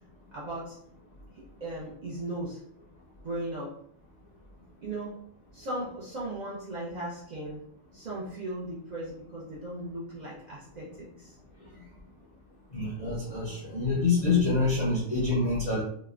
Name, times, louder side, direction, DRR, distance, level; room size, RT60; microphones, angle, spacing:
voice 1, 0.3-0.8 1.4-2.6 3.2-3.8 4.8-5.2 5.5-7.6 7.9-11.3, right 1 dB, 65° right, -6 dB, 0.4 m, -37 dB
voice 2, 12.7-15.8, left 3 dB, 45° left, -5 dB, 0.5 m, -26 dB
2.9 x 2.1 x 2.4 m, 0.66 s
omnidirectional pair, 1.4 m